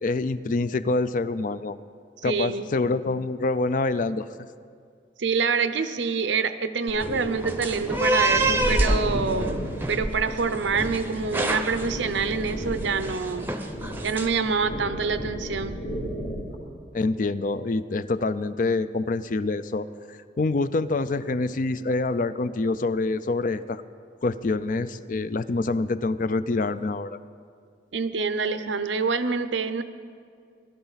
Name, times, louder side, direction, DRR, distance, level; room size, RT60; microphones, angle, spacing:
voice 1, 0.0-1.8 2.2-4.3 16.9-23.8 24.2-27.2, left 3 dB, 45° left, 13 dB, 0.4 m, -26 dB
voice 2, 2.2-2.7 5.2-13.5 14.0-15.8 27.9-29.8, right 5 dB, 80° right, 11 dB, 0.7 m, -26 dB
sound 1, 6.9-16.5, equal, 65° left, 3.0 m, -34 dB
sound 2, 7.0-14.3, right 1 dB, 10° right, 0.7 m, -28 dB
20.5 x 12.5 x 4.0 m, 2.2 s
head